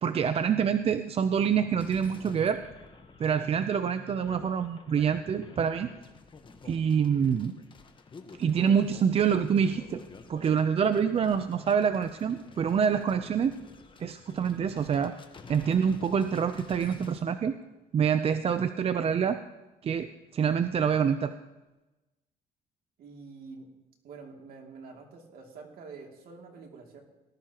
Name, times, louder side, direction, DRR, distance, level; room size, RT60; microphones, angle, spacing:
voice 1, 0.0-2.6 3.2-5.9 6.6-7.5 8.4-10.0 10.3-13.6 14.0-15.1 15.5-17.6 17.9-19.4 19.8-21.3, right 7 dB, 35° right, 10 dB, 0.5 m, -26 dB
sound 1, 1.8-17.2, left 4 dB, 30° left, 1.1 m, -50 dB
voice 2, 23.0-23.7 24.0-27.1, right 4 dB, 60° right, 1 dB, 2.6 m, -47 dB
19.0 x 12.0 x 3.0 m, 1.1 s
cardioid pair, 110°, 17 cm